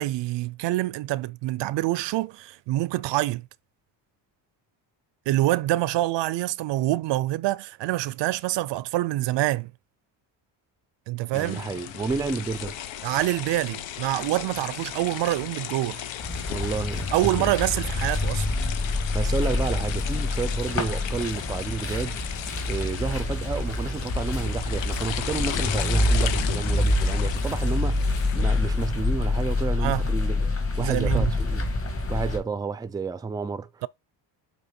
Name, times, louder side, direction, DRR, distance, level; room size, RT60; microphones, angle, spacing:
voice 1, 0.0-3.5 5.3-9.7 11.1-11.6 13.0-16.0 17.1-18.5 29.8-30.1 30.8-31.3, right 16 dB, 70° right, 0.5 m, -26 dB
sound 1, 11.3-29.0, left 11 dB, 85° left, 1.0 m, -36 dB
voice 2, 11.3-12.8 16.5-17.5 19.1-22.2 22.7-30.4 30.8-31.6 32.1-33.8, right 4 dB, 10° right, 0.4 m, -31 dB
sound 2, 16.2-32.4, left 2 dB, 30° left, 2.1 m, -26 dB
8.2 x 3.1 x 4.3 m
cardioid pair, 120°, 44 cm